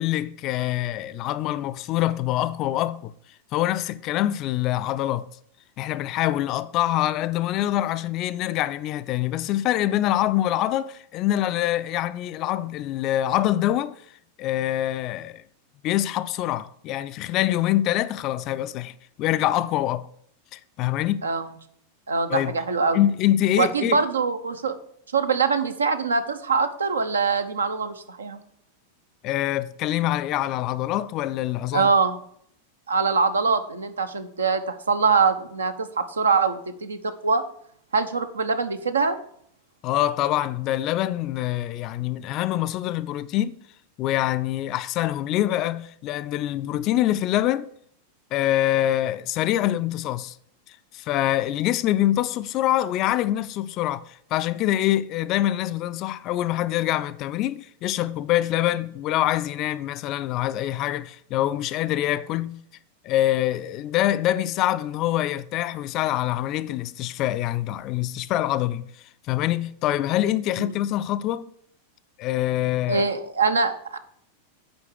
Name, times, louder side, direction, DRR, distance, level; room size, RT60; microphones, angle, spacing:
voice 1, 0.0-3.1 3.5-5.3 5.8-14.0 14.4-15.4 15.8-20.1 20.5-21.3 22.3-22.5 22.9-24.0 29.2-31.9 39.8-43.6 44.0-47.7 48.3-50.4 50.9-62.6 63.0-68.9 69.3-71.5 72.2-73.0, left 13 dB, 40° left, 0.4 m, -25 dB
voice 2, 22.1-23.0 23.6-24.8 25.1-28.4 31.7-32.2 32.9-37.4 37.9-39.2 70.6-70.7 72.9-74.0, right 5 dB, 70° right, 0.7 m, -23 dB
7.8 x 4.9 x 6.5 m
figure-of-eight pair, 90°, 0 cm